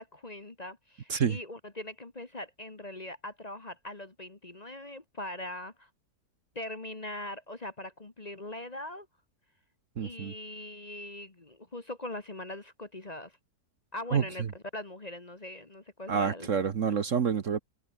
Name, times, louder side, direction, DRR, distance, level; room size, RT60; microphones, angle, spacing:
voice 1, 0.0-5.9 6.5-9.1 10.0-13.4 13.9-16.6, left 1 dB, 25° left, 1.5 m, -41 dB
voice 2, 10.0-10.3 14.1-14.5 16.1-17.6, right 6 dB, 50° right, 1.4 m, -28 dB
omnidirectional pair, 1.8 m